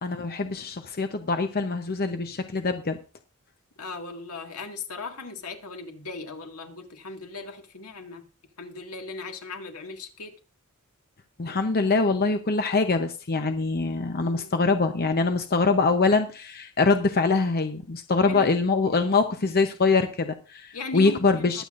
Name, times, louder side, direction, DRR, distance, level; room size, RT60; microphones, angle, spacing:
voice 1, 0.0-3.0 11.4-21.6, left 3 dB, 45° left, 7 dB, 0.7 m, -24 dB
voice 2, 3.8-8.3 8.6-10.3 14.2-14.5 18.2-18.5 20.7-21.6, left 3 dB, 85° left, 4 dB, 1.8 m, -38 dB
21.0 x 8.1 x 2.5 m, 0.33 s
head